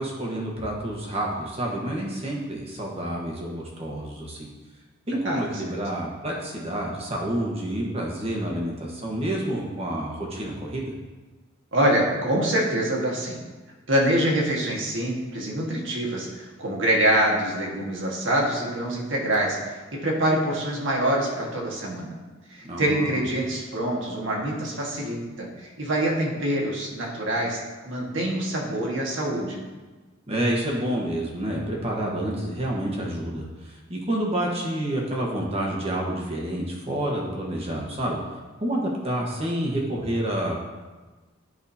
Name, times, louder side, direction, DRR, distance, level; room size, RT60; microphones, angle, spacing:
voice 1, 0.0-4.5 5.1-10.9 22.6-23.2 30.3-38.2 38.6-40.6, right 1 dB, 30° right, -2 dB, 1.3 m, -29 dB
voice 2, 11.7-13.4 13.9-22.2 22.5-27.6 27.8-29.6, right 1 dB, 65° right, -2 dB, 1.5 m, -25 dB
11.0 x 5.0 x 2.8 m, 1.3 s
head